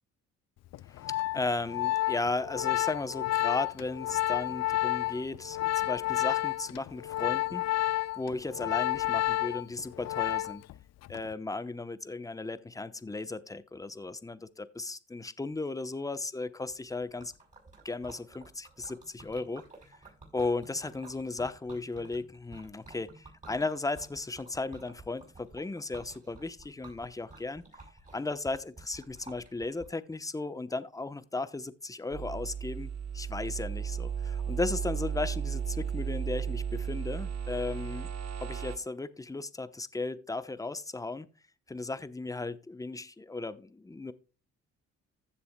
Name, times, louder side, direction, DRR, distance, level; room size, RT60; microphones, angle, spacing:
Organ, 0.7-10.7 11.0-11.3, left 15 dB, 60° left, 0.4 m, -30 dB
voice 1, 1.3-7.6 8.1-10.6 11.1-17.3 17.8-19.6 20.3-27.6 28.1-38.1 38.4-41.3 41.7-44.1, left 3 dB, 10° left, 0.8 m, -35 dB
Liquid, 16.7-29.9, right 2 dB, 25° right, 5.7 m, -53 dB
sound 1, 32.1-38.8, right 7 dB, 60° right, 1.3 m, -34 dB
15.5 x 6.9 x 2.2 m
cardioid pair, 90°, 30 cm